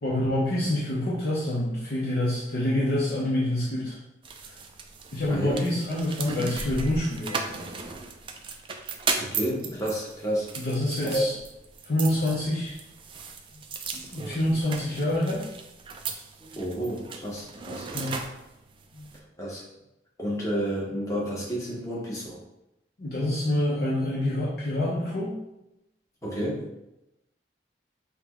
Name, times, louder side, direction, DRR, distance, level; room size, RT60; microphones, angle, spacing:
voice 1, 0.0-4.0 4.5-4.6 5.1-7.5 10.6-11.3 11.8-12.7 13.9-15.4 17.9-18.2 23.0-25.4, left 1 dB, 60° left, -7 dB, 0.9 m, -27 dB
sound 1, 4.2-19.2, right 4 dB, 30° right, 0.3 m, -36 dB
voice 2, 5.3-5.6 9.2-10.5 11.0-11.2 13.5-13.6 16.4-17.9 18.9-19.1 19.4-19.6 20.2-22.4 26.2-26.6, right 1 dB, 20° left, -5 dB, 1.0 m, -31 dB
5.8 x 2.3 x 3.0 m, 0.89 s
head